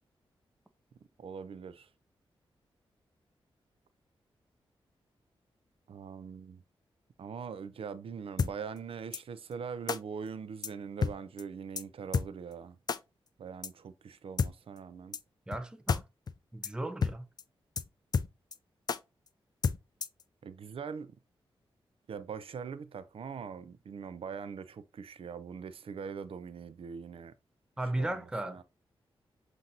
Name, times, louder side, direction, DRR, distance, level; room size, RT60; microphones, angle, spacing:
voice 1, 1.2-1.9 5.9-6.6 7.2-12.8 13.4-15.2 20.4-21.1 22.1-27.3 27.9-28.6, right 6 dB, 70° right, 0.5 m, -42 dB
sound 1, 8.4-8.5 9.1-9.2 9.9-10.0 10.6-10.7 11.0-11.1 11.4-11.5 11.8-11.9 12.1-12.3 12.9-13.0 13.6-13.7 14.4-14.5 15.1-15.2 15.5-15.6 15.9-16.0 16.3-16.4 16.6-16.7 17.0-17.1 17.4-17.5 17.8-17.9 18.1-18.6 18.9-19.0 19.6-20.2, left 5 dB, 45° left, 0.4 m, -30 dB
voice 2, 15.5-16.0 16.5-17.3 27.8-28.6, right 1 dB, 10° right, 0.5 m, -35 dB
7.4 x 2.6 x 2.7 m
cardioid pair, 80°, 10 cm